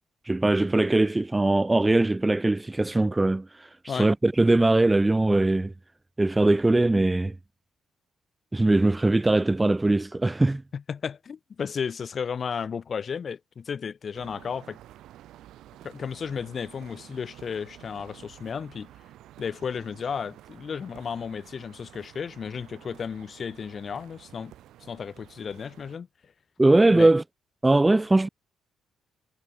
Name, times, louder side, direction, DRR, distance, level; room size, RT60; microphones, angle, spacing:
voice 1, 0.3-5.7 6.2-7.4 8.5-10.6 26.6-27.2 27.6-28.3, right 2 dB, 15° right, 0.3 m, -21 dB
voice 2, 10.7-14.8 15.8-18.9 19.4-24.5 24.8-26.3 26.9-27.1, left 6 dB, 45° left, 2.1 m, -34 dB
sound 1, 14.1-26.0, right 13 dB, 85° right, 2.7 m, -51 dB
cardioid pair, 90°, 0 cm